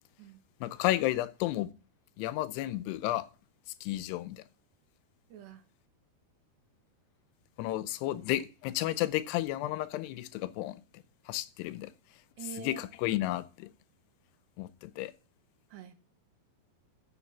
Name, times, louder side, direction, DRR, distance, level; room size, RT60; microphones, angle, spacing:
voice 1, 0.6-1.7 2.2-3.3 3.8-4.4 7.6-11.9 12.6-13.7 14.6-15.1, left 15 dB, 85° left, 2.7 m, -32 dB
voice 2, 5.3-5.6 8.1-8.3 12.4-13.2 15.7-15.9, right 7 dB, 85° right, 3.5 m, -46 dB
7.7 x 7.1 x 7.1 m
omnidirectional pair, 4.8 m